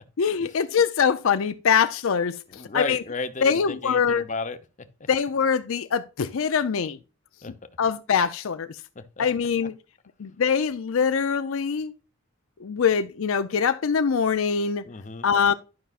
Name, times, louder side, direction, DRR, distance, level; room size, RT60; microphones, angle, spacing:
voice 1, 0.2-3.0 3.4-4.2 5.1-7.0 7.8-8.8 9.2-9.7 10.2-11.9 12.6-14.9 15.2-15.5, left 6 dB, 70° left, 0.5 m, -23 dB
voice 2, 2.5-5.1 7.4-7.5 9.0-9.3 9.6-9.7 14.8-15.3, left 3 dB, 35° left, 0.7 m, -34 dB
11.5 x 5.5 x 2.4 m
head